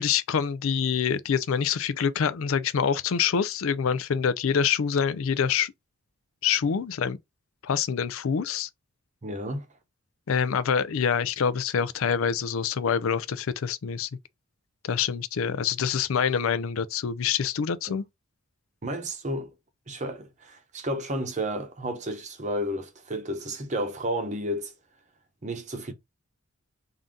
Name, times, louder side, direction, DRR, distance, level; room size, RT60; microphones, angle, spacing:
voice 1, 0.0-5.7 6.4-7.2 7.6-8.7 10.3-14.1 14.8-18.0, left 7 dB, 65° left, 0.4 m, -26 dB
voice 2, 9.2-9.6 18.8-19.5 19.9-24.7 25.4-25.9, equal, 35° right, 0.8 m, -32 dB
3.7 x 2.7 x 3.5 m
head